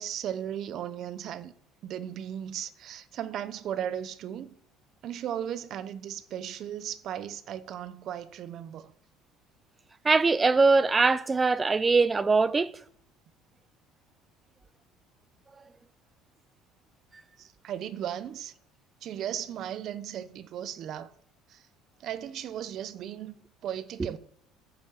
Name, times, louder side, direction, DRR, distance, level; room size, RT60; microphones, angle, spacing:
voice 1, 0.0-1.5 1.8-4.6 5.0-8.9 17.4-18.5 19.0-21.1 21.5-21.6 22.0-23.3 23.6-24.2, right 10 dB, 45° right, 0.8 m, -36 dB
voice 2, 10.0-12.7, right 4 dB, 15° right, 0.5 m, -22 dB
10.5 x 7.3 x 7.3 m
cardioid pair, 140°, 0 cm